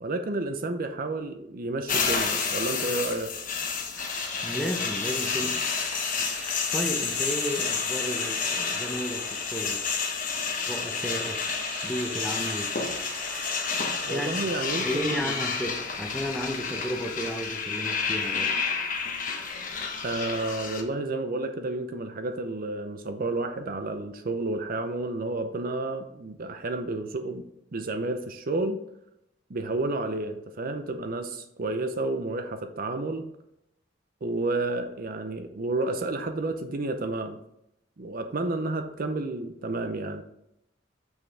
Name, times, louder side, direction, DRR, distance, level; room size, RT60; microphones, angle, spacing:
voice 1, 0.0-3.3 14.1-15.3 20.0-27.5 27.7-28.8 29.5-33.3 34.2-37.4 38.0-40.2, right 2 dB, 50° right, 7 dB, 0.6 m, -31 dB
sound 1, 1.9-20.8, left 5 dB, 45° left, 1.0 m, -30 dB
sound 2, 3.5-17.1, right 2 dB, 70° right, 1.6 m, -43 dB
voice 2, 4.4-5.7 6.7-9.8 10.7-11.4 11.8-12.7 14.1-14.4 14.8-18.5, equal, ahead, 4 dB, 0.7 m, -33 dB
6.2 x 5.6 x 3.4 m, 0.80 s
head